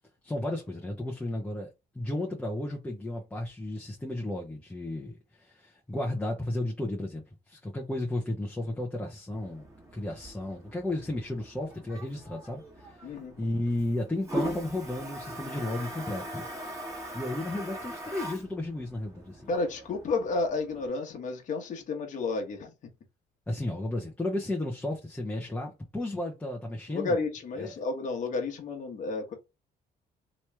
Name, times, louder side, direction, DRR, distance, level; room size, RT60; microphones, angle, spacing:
voice 1, 0.2-1.7 1.9-16.5 17.1-19.5 23.5-27.2 27.6-27.7, left 1 dB, 10° left, 0.7 m, -33 dB
Toilet flush, 9.3-20.9, right 1 dB, 20° right, 1.3 m, -41 dB
voice 2, 13.0-13.3 19.5-22.7 26.9-29.3, left 3 dB, 50° left, 1.1 m, -31 dB
3.0 x 3.0 x 3.3 m
cardioid pair, 120°, 16 cm